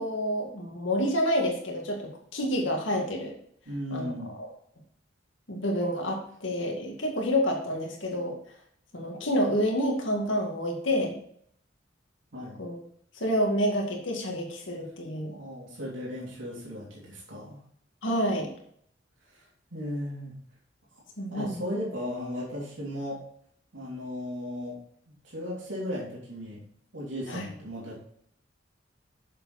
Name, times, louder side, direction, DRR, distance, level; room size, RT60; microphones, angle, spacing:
voice 1, 0.0-3.3 3.9-4.1 4.4-4.5 5.5-8.3 8.9-11.1 12.6-12.8 13.1-15.3 18.0-18.5 21.2-21.6 27.3-27.5, equal, 80° left, 0 dB, 2.1 m, -28 dB
voice 2, 3.7-4.3 12.3-12.6 15.3-17.6 19.3-20.3 21.3-23.2 23.7-24.8 25.2-26.6 26.9-28.0, equal, 80° right, -6 dB, 3.3 m, -36 dB
7.4 x 7.4 x 4.2 m, 0.65 s
head